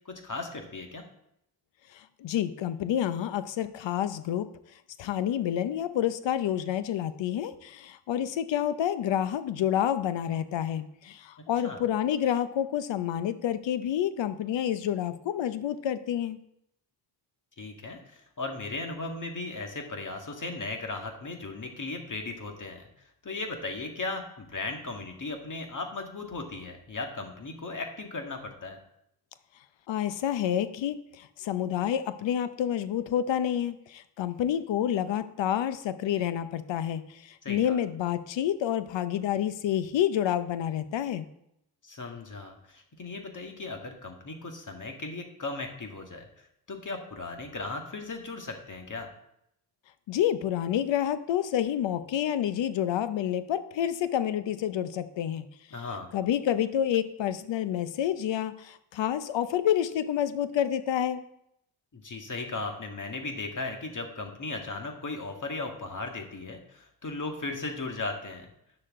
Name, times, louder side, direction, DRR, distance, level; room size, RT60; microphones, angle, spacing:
voice 1, 0.1-1.0 11.6-11.8 17.6-22.9 23.2-28.8 37.4-37.8 41.8-49.1 55.7-56.1 61.9-68.5, left 3 dB, 40° left, 3 dB, 1.9 m, -37 dB
voice 2, 1.9-4.5 5.0-16.4 29.9-41.3 50.1-55.5 56.1-61.2, left 10 dB, 70° left, 13 dB, 0.8 m, -28 dB
9.8 x 6.5 x 3.7 m, 0.77 s
supercardioid pair, 45°, 46 cm